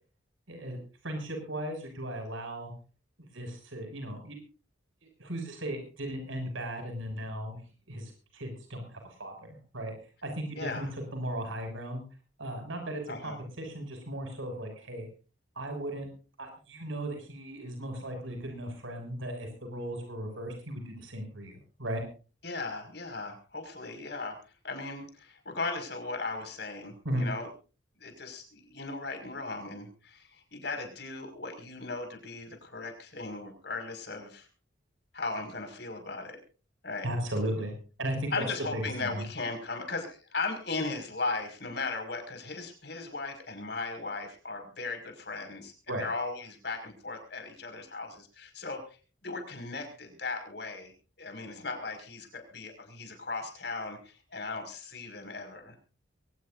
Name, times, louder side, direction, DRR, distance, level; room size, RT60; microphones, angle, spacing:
voice 1, 0.5-0.8 1.0-2.7 3.3-4.4 5.0-7.6 7.9-9.9 10.2-12.0 12.4-15.1 15.5-16.1 16.4-22.0 27.0-27.3 37.0-37.7 38.0-38.4 38.7-39.2 45.9-46.1, right 1 dB, 85° right, 4 dB, 6.4 m, -36 dB
voice 2, 10.5-10.9 13.1-13.4 22.4-24.4 24.6-27.5 28.0-34.5 35.1-36.4 36.8-37.1 38.3-48.8 49.2-50.9 51.2-55.9, left 3 dB, 55° left, 5 dB, 5.7 m, -37 dB
23.5 x 18.5 x 2.6 m, 0.36 s
head